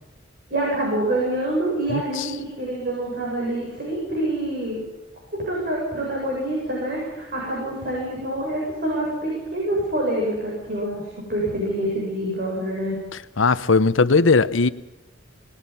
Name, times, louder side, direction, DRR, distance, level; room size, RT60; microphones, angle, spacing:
voice 1, 0.5-4.8 5.4-11.0 11.3-13.0, right 1 dB, 50° right, 7.9 m, -26 dB
voice 2, 1.9-2.3 13.4-14.7, left 4 dB, 90° left, 0.9 m, -18 dB
26.5 x 20.0 x 5.7 m
head